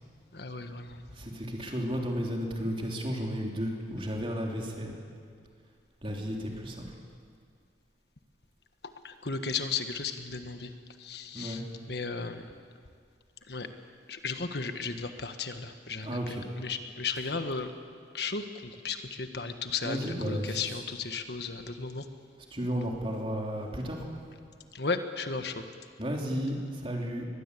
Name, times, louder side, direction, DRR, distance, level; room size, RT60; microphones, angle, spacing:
voice 1, 0.3-1.0 9.0-10.7 11.0-11.6 11.9-12.5 13.5-13.7 14.1-17.7 18.1-22.0 24.7-25.6, left 4 dB, 65° left, 8 dB, 1.4 m, -35 dB
voice 2, 1.1-5.0 6.0-6.8 11.3-11.6 16.0-16.4 19.8-20.9 22.5-24.0 26.0-27.3, equal, 30° right, 0 dB, 3.4 m, -33 dB
23.0 x 20.5 x 8.4 m, 2.1 s
head